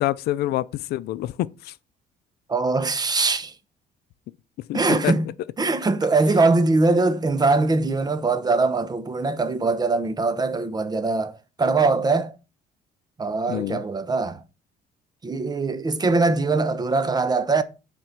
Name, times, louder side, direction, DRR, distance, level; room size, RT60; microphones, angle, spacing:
voice 1, 0.0-1.7 4.7-5.1 13.5-13.8, left 15 dB, 70° left, 0.5 m, -26 dB
voice 2, 2.5-3.5 4.7-5.3 5.6-11.3 11.6-12.3 13.2-14.4 15.2-17.6, right 3 dB, 25° right, 1.0 m, -22 dB
7.5 x 4.4 x 6.7 m
cardioid pair, 110°, 17 cm